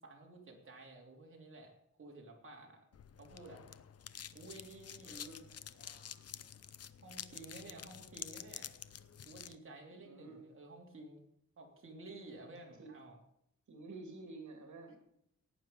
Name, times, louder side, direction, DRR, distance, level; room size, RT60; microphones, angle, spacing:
voice 1, 0.0-2.8 3.2-3.6 4.3-5.2 7.0-8.7 9.2-11.2 11.6-13.2, right 2 dB, 45° right, 0 dB, 3.2 m, -53 dB
sound 1, 2.9-9.6, left 8 dB, 55° left, 0.7 m, -49 dB
sound 2, 4.7-9.5 9.9-10.3, left 1 dB, 35° left, 5.5 m, -69 dB
voice 2, 5.0-5.4 10.0-10.4 12.8-12.9 13.7-15.0, right 2 dB, 70° right, 3 dB, 2.9 m, -50 dB
17.0 x 9.5 x 5.3 m, 0.74 s
wide cardioid pair, 170°, 30 cm